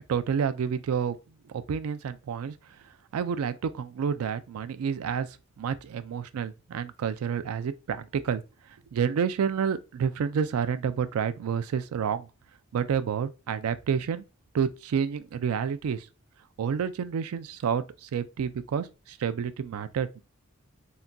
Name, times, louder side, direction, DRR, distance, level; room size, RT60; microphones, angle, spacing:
voice 1, 0.1-1.2 1.5-2.5 3.1-5.3 5.6-8.4 8.9-12.3 12.7-14.2 14.5-16.1 16.6-20.2, right 7 dB, 85° right, 0.4 m, -29 dB
3.8 x 2.2 x 2.3 m
head